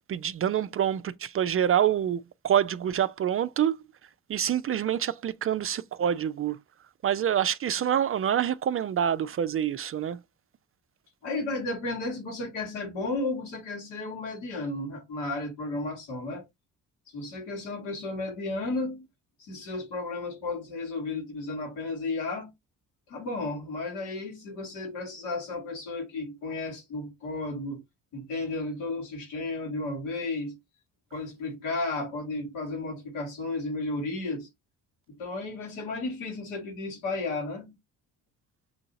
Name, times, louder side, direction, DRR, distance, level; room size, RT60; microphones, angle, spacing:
voice 1, 0.1-3.7 4.3-6.6 7.0-10.2, right 9 dB, 35° right, 0.4 m, -26 dB
voice 2, 11.2-16.4 17.1-19.0 19.4-22.5 23.1-27.8 28.1-30.6 31.1-34.5 35.1-37.8, left 2 dB, 80° left, 1.8 m, -33 dB
6.3 x 2.8 x 2.6 m
hypercardioid pair, 50°, 41 cm